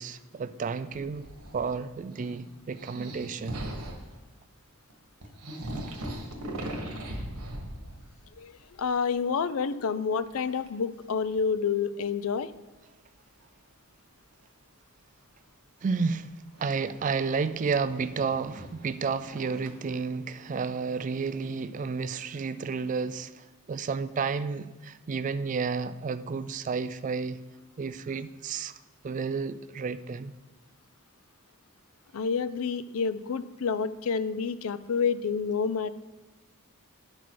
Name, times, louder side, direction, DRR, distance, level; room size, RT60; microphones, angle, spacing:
voice 1, 0.0-3.6 15.8-27.4 27.8-28.8 29.0-30.4, right 5 dB, 35° right, 0.3 m, -31 dB
sound 1, 0.9-1.8 2.1-4.1 4.9-5.0 5.2-8.3 8.6-9.1 10.3-10.7 11.4-11.5 13.4-13.5 16.5-19.7, right 1 dB, 80° right, 1.5 m, -39 dB
voice 2, 8.4-12.5 32.1-35.9, left 6 dB, 65° left, 0.4 m, -29 dB
10.5 x 6.0 x 4.7 m
head